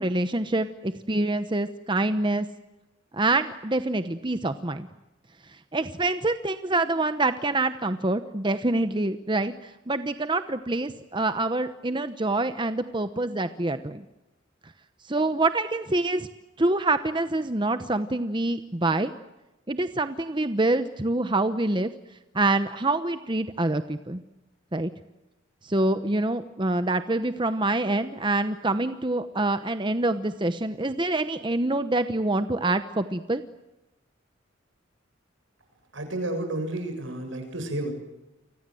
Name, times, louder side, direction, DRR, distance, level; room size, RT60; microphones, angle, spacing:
voice 1, 0.0-2.5 3.1-4.9 5.7-14.0 15.1-16.3 16.6-19.1 19.7-21.9 22.3-24.2 24.7-24.9 25.6-33.4, right 2 dB, 25° right, 10 dB, 0.9 m, -26 dB
voice 2, 35.9-37.9, right 1 dB, 75° right, 6 dB, 7.3 m, -31 dB
30.0 x 25.0 x 7.8 m, 0.99 s
head